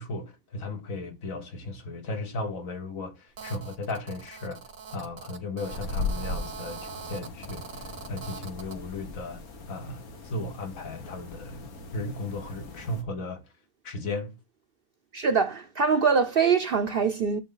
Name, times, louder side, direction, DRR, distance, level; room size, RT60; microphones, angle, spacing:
voice 1, 0.0-4.6 4.9-9.4 9.7-13.4 13.8-14.3, left 2 dB, 70° left, 1.7 m, -36 dB
Telephone, 3.4-8.8, right 6 dB, 75° right, 1.4 m, -42 dB
sound 1, 5.6-13.0, left 3 dB, 85° left, 1.8 m, -38 dB
voice 2, 15.1-17.4, right 5 dB, 50° right, 0.7 m, -23 dB
9.5 x 6.6 x 3.9 m
omnidirectional pair, 1.5 m